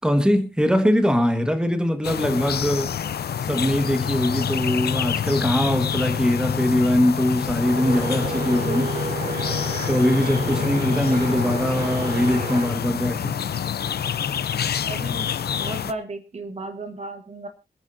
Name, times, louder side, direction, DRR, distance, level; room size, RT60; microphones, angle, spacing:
voice 1, 0.0-2.9 3.4-8.9 9.9-13.4, equal, 5° right, 1.4 m, -22 dB
sound 1, 2.0-15.9, left 8 dB, 75° left, 0.7 m, -27 dB
sound 2, 7.6-12.7, right 3 dB, 70° right, 4.1 m, -31 dB
voice 2, 14.8-15.3 15.6-17.5, right 2 dB, 40° right, 1.3 m, -34 dB
26.0 x 9.7 x 2.6 m
wide cardioid pair, 175°, 16 cm